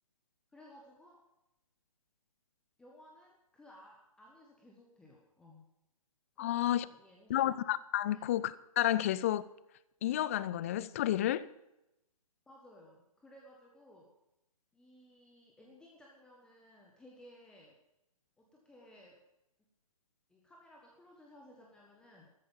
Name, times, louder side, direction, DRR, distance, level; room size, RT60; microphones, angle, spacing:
voice 1, 0.5-1.2 2.8-5.7 6.3-7.4 8.1-8.3 12.5-14.1 14.7-17.8 18.4-19.2 20.3-22.3, left 1 dB, 5° left, 1.5 m, -58 dB
voice 2, 6.4-6.9 7.3-9.4 10.0-11.4, left 13 dB, 25° left, 0.5 m, -31 dB
14.0 x 13.5 x 5.5 m
figure-of-eight pair, 135°, 18 cm